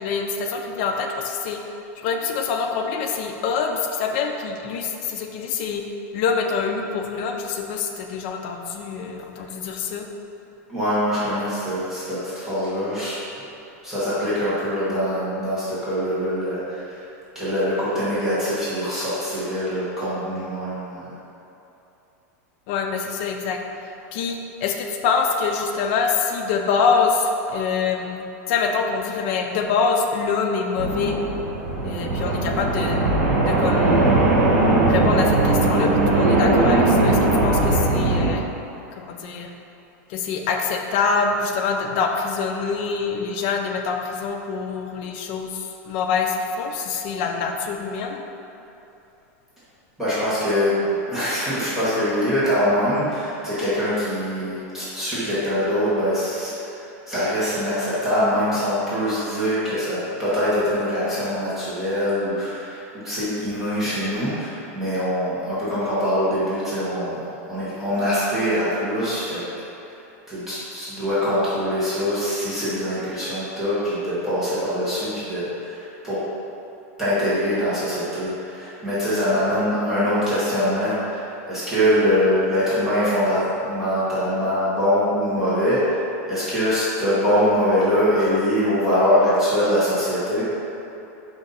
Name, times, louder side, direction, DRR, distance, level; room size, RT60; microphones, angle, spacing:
voice 1, 0.0-1.6 2.0-5.8 6.1-10.1 22.7-23.6 24.1-31.2 31.8-33.0 33.4-34.2 34.9-38.5 39.0-39.5 40.1-48.2, left 5 dB, 45° left, 3 dB, 0.4 m, -25 dB
voice 2, 10.7-13.2 13.8-17.0 17.3-21.1 50.0-56.8 57.1-69.5 70.3-76.2 77.0-86.0 86.2-90.4, equal, 5° right, -13 dB, 1.1 m, -23 dB
sound 1, 30.8-38.3, right 2 dB, 85° right, 0.9 m, -19 dB
5.0 x 2.6 x 4.0 m, 2.9 s
supercardioid pair, 165°, 8 cm